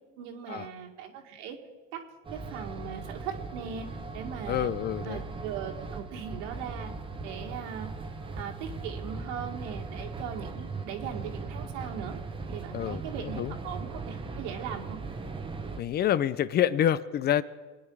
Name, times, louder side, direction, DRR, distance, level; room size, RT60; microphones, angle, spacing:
voice 1, 0.2-1.6 1.9-3.9 4.1-4.7 5.1-6.9 7.2-7.9 8.4-12.2 12.5-15.0, right 8 dB, 75° right, 3 dB, 2.1 m, -39 dB
sound 1, 2.2-15.8, right 4 dB, 15° right, 1.0 m, -39 dB
voice 2, 4.5-5.2 12.7-13.6 15.8-17.4, left 10 dB, 30° left, 17 dB, 0.5 m, -27 dB
24.0 x 9.7 x 4.8 m, 1.4 s
supercardioid pair, 130°, 36 cm